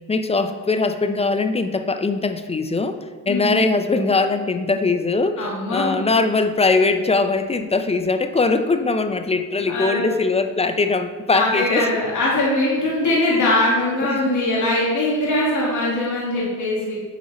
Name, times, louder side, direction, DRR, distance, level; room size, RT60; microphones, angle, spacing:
voice 1, 0.1-3.0 3.3-11.9 13.3-13.4 14.0-14.4, left 3 dB, 15° left, 9 dB, 0.5 m, -21 dB
voice 2, 3.3-3.6 5.4-5.9 9.7-10.2 11.3-17.0, left 1 dB, 50° left, -5 dB, 2.3 m, -21 dB
7.9 x 4.5 x 4.2 m, 1.4 s
supercardioid pair, 80°, 38 cm